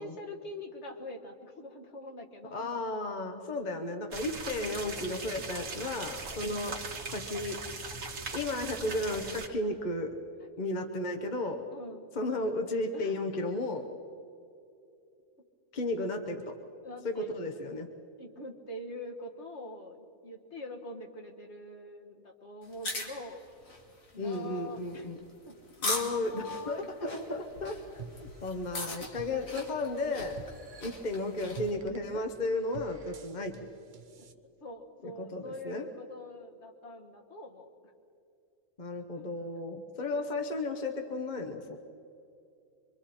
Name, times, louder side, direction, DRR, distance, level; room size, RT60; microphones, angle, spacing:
voice 1, 0.0-2.7 6.4-6.9 8.6-8.8 10.4-10.5 11.7-12.1 12.9-13.1 16.0-16.3 16.8-17.3 18.2-23.4 24.1-25.1 25.5-25.6 26.2-26.9 27.2-27.5 29.0-29.1 32.1-32.3 34.2-34.3 34.6-37.9 39.1-39.2, left 1 dB, 55° left, 1 dB, 2.0 m, -44 dB
voice 2, 2.5-6.7 7.1-7.6 8.3-10.1 10.6-11.6 12.1-13.9 15.7-16.5 17.0-17.9 24.2-25.2 25.8-27.8 28.4-30.4 30.8-33.5 35.0-35.9 38.8-41.8, left 2 dB, 35° left, 4 dB, 1.1 m, -34 dB
sound 1, 4.1-9.5, right 4 dB, 70° right, 1.9 m, -40 dB
sound 2, 22.6-31.7, left 2 dB, 85° left, 2.6 m, -40 dB
sound 3, 28.0-34.3, right 5 dB, 45° right, 0.9 m, -49 dB
26.0 x 24.0 x 4.4 m, 2.6 s
omnidirectional pair, 1.4 m